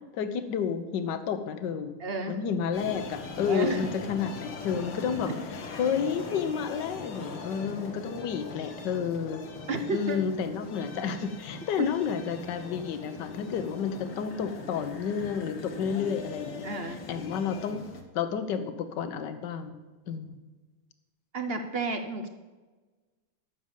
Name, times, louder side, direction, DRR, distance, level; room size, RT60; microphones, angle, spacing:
voice 1, 0.1-2.0 2.3-5.3 5.7-9.4 9.9-17.8 18.1-19.8 20.1-20.4, left 7 dB, 60° left, 10 dB, 1.5 m, -31 dB
voice 2, 2.0-2.4 3.5-3.8 9.7-10.2 11.8-11.9 16.6-17.0 21.3-22.3, right 3 dB, 50° right, 6 dB, 0.7 m, -31 dB
sound 1, 2.7-18.0, left 3 dB, 80° left, 2.3 m, -41 dB
12.5 x 6.9 x 7.3 m, 1.3 s
omnidirectional pair, 2.3 m